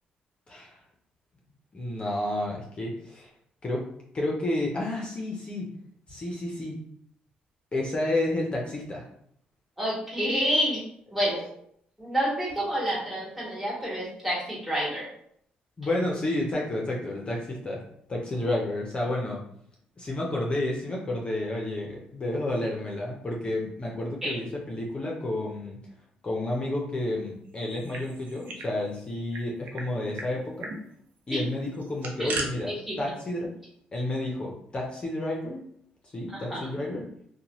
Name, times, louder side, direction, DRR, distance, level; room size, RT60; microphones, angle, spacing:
voice 1, 0.5-0.8 1.7-3.3 3.6-3.8 4.1-5.7 6.1-6.8 7.7-9.1 11.3-11.5 15.8-17.8 18.1-19.4 20.0-25.8 26.2-30.7 31.3-33.5 33.9-35.6 36.1-37.0, left 1 dB, 35° left, -2 dB, 0.6 m, -30 dB
voice 2, 9.8-10.8 11.1-11.4 12.0-15.0 24.2-24.4 32.2-32.3 32.7-32.8 36.5-36.6, equal, 5° right, -8 dB, 1.3 m, -28 dB
sound 1, 27.6-28.7 29.0-29.1 29.3-29.9 30.2-30.3 30.6-30.8 31.7-32.5, right 3 dB, 75° right, 0.5 m, -36 dB
2.6 x 2.2 x 3.0 m, 0.68 s
cardioid pair, 85°, 3 cm